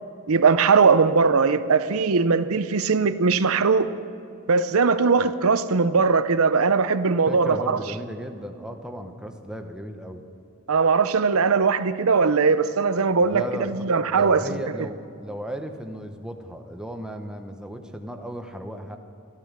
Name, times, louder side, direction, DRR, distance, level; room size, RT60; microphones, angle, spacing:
voice 1, 0.3-3.9 4.5-7.8 10.7-14.6, right 5 dB, 70° right, 0.7 m, -20 dB
voice 2, 7.3-10.3 13.2-13.7 14.1-19.0, equal, 5° right, 0.9 m, -35 dB
14.5 x 12.5 x 6.6 m
head